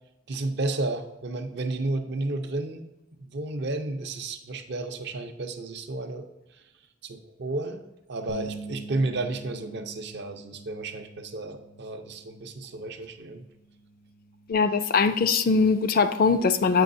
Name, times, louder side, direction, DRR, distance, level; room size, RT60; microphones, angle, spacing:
voice 1, 0.3-2.8 3.3-6.3 7.0-7.8 8.1-13.5, right 2 dB, 55° right, 6 dB, 0.6 m, -32 dB
Bass guitar, 8.3-14.5, right 2 dB, 75° left, 0.7 m, -45 dB
voice 2, 14.5-16.8, left 4 dB, 45° left, 11 dB, 0.3 m, -21 dB
7.6 x 5.4 x 2.6 m, 0.95 s
head